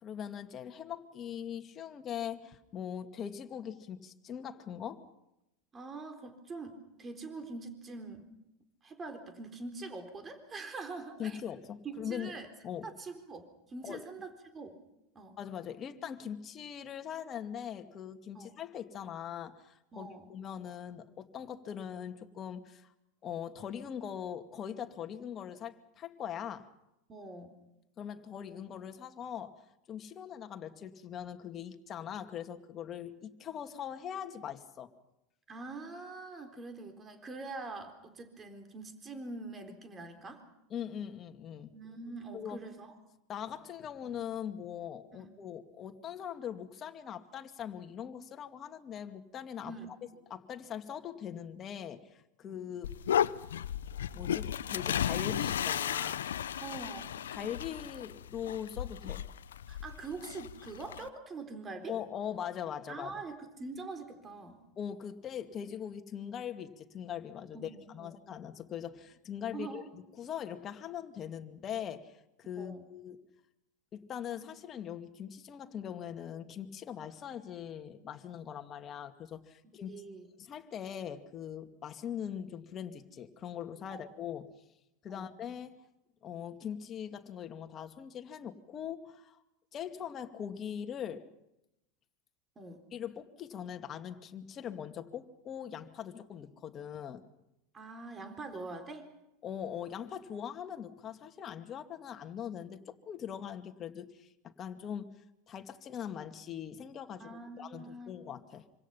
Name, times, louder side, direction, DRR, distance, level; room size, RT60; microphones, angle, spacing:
voice 1, 0.0-5.1 11.2-12.3 12.6-12.9 13.8-14.1 15.4-22.9 23.2-26.7 28.0-34.9 40.7-41.7 42.3-42.6 43.3-49.7 50.3-53.0 54.1-56.2 57.3-59.2 61.9-63.2 64.8-73.2 73.9-80.0 80.4-84.5 85.0-85.8 86.2-89.4 89.7-91.2 92.9-97.2 99.4-105.2 105.5-108.7, left 9 dB, 35° left, 6 dB, 2.3 m, -41 dB
voice 2, 5.7-8.2 8.8-11.4 11.8-12.5 12.8-14.8 15.1-15.4 18.3-18.5 19.9-20.3 27.1-27.5 35.5-40.4 41.7-43.0 45.1-45.3 49.7-49.9 52.4-52.6 56.6-57.1 59.7-62.0 62.9-64.6 67.5-68.1 69.5-69.9 72.6-72.9 79.9-80.3 83.9-84.0 85.1-85.3 92.6-92.9 97.7-99.1 107.2-108.1, right 3 dB, 25° right, 6 dB, 4.0 m, -44 dB
sound 1, 52.8-61.1, left 9 dB, 80° left, 0.8 m, -34 dB
26.5 x 26.0 x 5.8 m, 0.89 s
hypercardioid pair, 90°, 0 cm